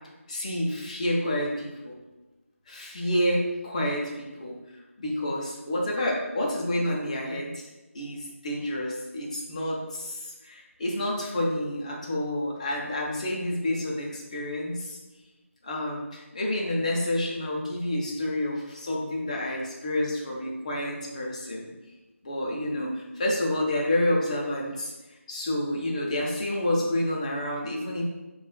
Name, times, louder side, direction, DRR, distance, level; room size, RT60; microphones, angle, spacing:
voice 1, 0.3-2.0 2.7-4.6 5.0-7.7 7.9-15.0 15.6-21.7 22.2-24.9 25.3-28.0, left 1 dB, 30° left, -2 dB, 0.7 m, -29 dB
7.2 x 2.4 x 2.2 m, 1.1 s
figure-of-eight pair, 165°, 8 cm